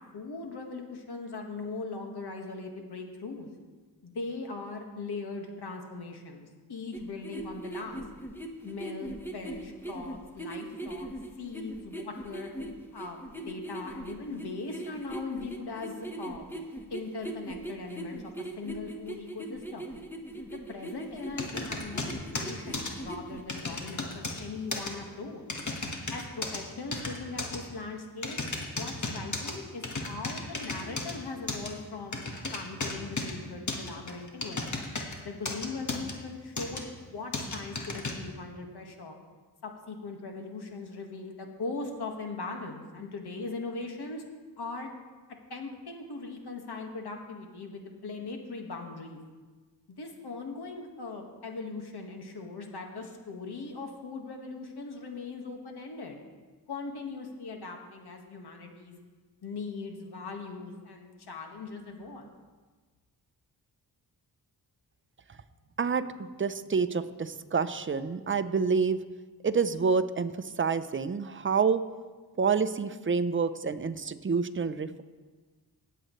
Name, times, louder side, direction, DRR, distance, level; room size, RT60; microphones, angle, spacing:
voice 1, 0.1-3.5 4.0-8.0 8.6-11.1 11.4-12.5 12.9-16.5 16.9-20.0 20.5-25.4 26.1-28.4 28.7-34.8 35.2-39.2 39.6-44.2 44.6-44.9 45.5-49.2 49.9-56.2 56.7-59.0 59.4-62.3, left 3 dB, 70° left, 3 dB, 1.7 m, -40 dB
sound 1, 6.9-23.4, right 1 dB, 5° left, 1.2 m, -40 dB
sound 2, 21.4-22.9 23.5-24.4 24.7-24.9 25.5-26.6 26.9-27.6 28.2-29.5 29.8-31.1 31.5-31.7 32.1-33.3 33.7-35.2 35.5-36.1 36.6-36.8 37.3-38.1, left 3 dB, 45° left, 1.7 m, -34 dB
voice 2, 65.8-69.0 69.4-71.8 72.4-75.0, right 5 dB, 30° right, 11 dB, 0.6 m, -28 dB
18.0 x 7.8 x 3.2 m, 1.3 s
cardioid pair, 60°, 40 cm